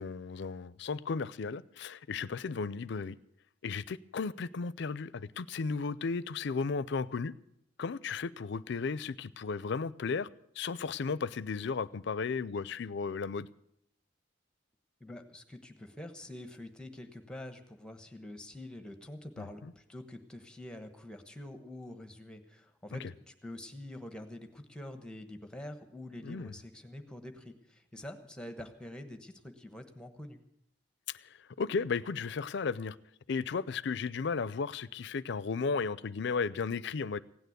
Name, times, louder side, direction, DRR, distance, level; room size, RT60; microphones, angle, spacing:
voice 1, 0.0-3.2 3.6-7.3 7.8-10.3 10.6-13.5 19.4-19.5 26.2-26.5 31.6-33.0 33.3-37.2, left 5 dB, 65° left, 0.5 m, -34 dB
voice 2, 15.0-30.4, left 1 dB, 5° left, 1.1 m, -46 dB
16.5 x 9.2 x 8.0 m
head